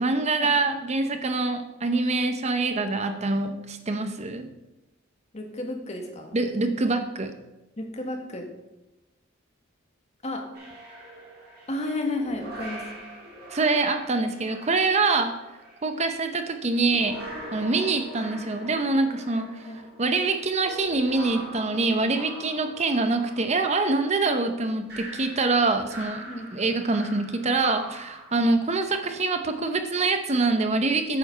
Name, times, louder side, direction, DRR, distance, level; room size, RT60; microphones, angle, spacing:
voice 1, 0.0-4.5 6.3-7.3 13.5-15.3 15.8-17.2 17.5-19.7 20.0-26.2 26.5-31.2, right 3 dB, 35° right, 7 dB, 0.7 m, -25 dB
voice 2, 5.3-6.4 7.8-8.5 10.2-10.4 11.7-12.8 19.7-19.8 26.3-26.5, left 2 dB, 35° left, 3 dB, 1.5 m, -32 dB
sound 1, 10.5-15.9 16.6-28.3, right 1 dB, 55° right, 3.0 m, -42 dB
9.1 x 7.0 x 5.6 m, 1.0 s
head